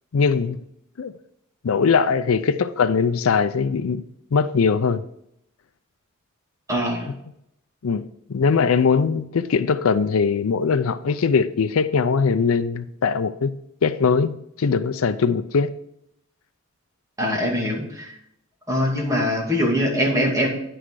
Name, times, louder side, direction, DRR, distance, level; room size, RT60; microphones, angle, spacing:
voice 1, 0.1-0.6 1.0-1.1 1.6-4.0 4.3-5.0 7.8-8.0 8.3-13.5 13.8-15.7, left 5 dB, 75° left, 0.5 m, -21 dB
voice 2, 6.7-7.1 17.2-18.1 18.7-20.5, equal, 15° right, 2.4 m, -22 dB
10.0 x 6.2 x 4.7 m
head